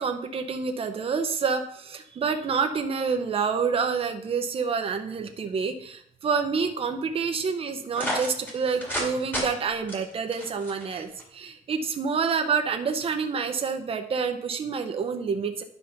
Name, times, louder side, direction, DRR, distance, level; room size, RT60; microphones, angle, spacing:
voice 1, 0.0-15.6, right 5 dB, 35° right, 6 dB, 0.8 m, -28 dB
sound 1, 7.9-9.1 9.3-9.5 9.9-11.2, equal, 10° left, 2.4 m, -31 dB
10.5 x 4.1 x 5.8 m, 0.68 s
cardioid pair, 170°, 17 cm